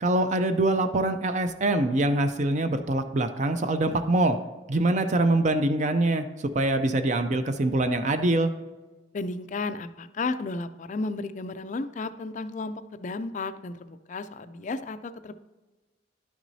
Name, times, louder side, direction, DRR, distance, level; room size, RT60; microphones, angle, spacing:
voice 1, 0.0-4.4 4.7-6.2 6.5-8.5, right 2 dB, 35° right, 8 dB, 0.4 m, -24 dB
voice 2, 9.1-15.3, left 3 dB, 40° left, 11 dB, 0.3 m, -33 dB
11.0 x 6.1 x 2.7 m, 1.2 s
head